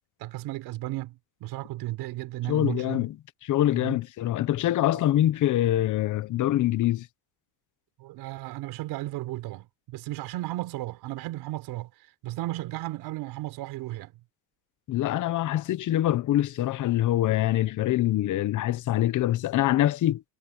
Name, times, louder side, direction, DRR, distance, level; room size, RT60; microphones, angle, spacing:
voice 1, 0.2-3.0 3.8-4.0 4.9-5.0 8.0-11.9 12.2-14.1, right 17 dB, 80° right, 4.8 m, -34 dB
voice 2, 2.5-3.2 3.4-7.1 14.9-20.2, left 13 dB, 50° left, 1.1 m, -24 dB
cardioid pair, 145°, 38 cm